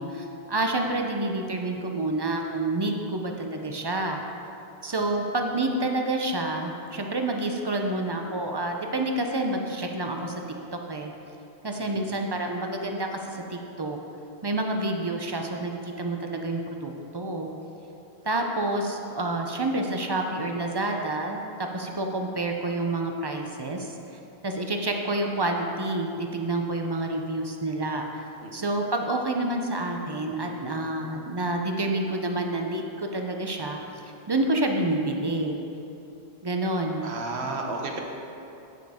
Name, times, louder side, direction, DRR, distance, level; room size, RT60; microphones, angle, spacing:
voice 1, 0.0-4.2 4.8-10.4 10.9-11.1 11.6-14.0 14.4-17.5 18.3-23.9 24.4-28.1 28.5-33.8 34.3-35.6 36.4-37.0, right 2 dB, 35° right, 3 dB, 0.4 m, -28 dB
voice 2, 28.4-28.7 37.0-38.0, right 3 dB, 85° right, 2 dB, 1.2 m, -33 dB
8.5 x 7.6 x 3.6 m, 2.8 s
omnidirectional pair, 1.1 m